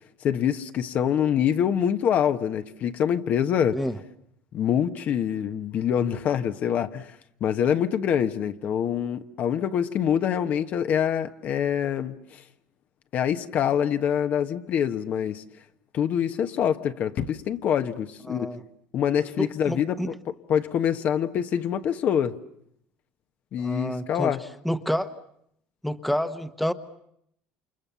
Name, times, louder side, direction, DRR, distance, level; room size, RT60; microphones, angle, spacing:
voice 1, 0.2-3.8 4.5-7.1 7.4-12.4 13.1-15.4 15.9-18.5 18.9-20.0 20.5-22.4 23.5-24.4, left 9 dB, 50° left, 8 dB, 1.3 m, -25 dB
voice 2, 18.3-18.6 19.4-20.1 23.6-24.4 24.6-25.1 25.8-26.7, equal, ahead, 10 dB, 1.2 m, -28 dB
29.0 x 27.5 x 7.0 m, 0.73 s
cardioid pair, 120°, 4 cm